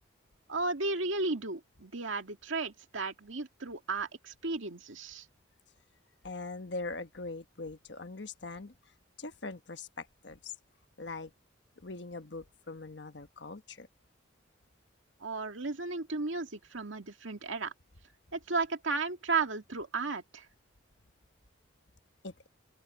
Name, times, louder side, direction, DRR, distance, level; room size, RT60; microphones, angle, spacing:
voice 1, 0.5-5.3 15.2-17.7 18.3-20.5, right 3 dB, 80° right, 2.0 m, -34 dB
voice 2, 6.2-8.7 9.2-10.5 11.0-11.3 11.8-13.9 22.2-22.5, left 3 dB, 60° left, 1.2 m, -42 dB
open air
head